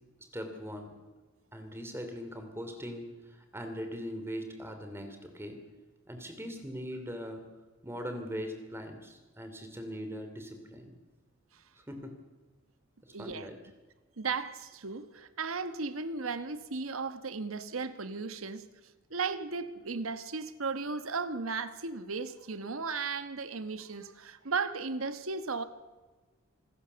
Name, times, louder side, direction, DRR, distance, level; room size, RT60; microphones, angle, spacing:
voice 1, 0.3-0.9 1.5-5.6 6.1-7.4 7.8-10.9 11.9-12.1 13.2-13.6, equal, 10° right, 2.9 m, -40 dB
voice 2, 13.1-13.5 14.2-18.6 19.1-25.6, right 4 dB, 85° right, 1.2 m, -35 dB
27.0 x 15.0 x 6.9 m
head